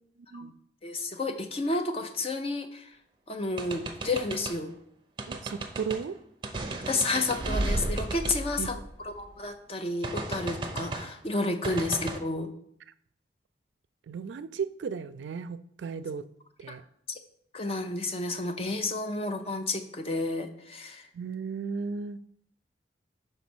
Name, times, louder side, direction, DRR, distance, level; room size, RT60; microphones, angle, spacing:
voice 1, 0.8-2.9 3.3-4.7 6.8-8.8 9.0-12.5 16.7-16.8 17.1-17.2 17.5-21.1, left 2 dB, 30° left, 6 dB, 0.6 m, -31 dB
sound 1, 3.6-4.6 5.2-6.0 6.4-9.3 10.0-11.1 11.6-12.2, right 2 dB, 25° right, 0.6 m, -34 dB
voice 2, 5.3-6.2 8.6-8.8 11.7-11.8 14.1-16.3 16.6-16.8 21.1-22.2, right 5 dB, 80° right, 14 dB, 0.4 m, -35 dB
5.4 x 4.1 x 6.0 m, 0.67 s
head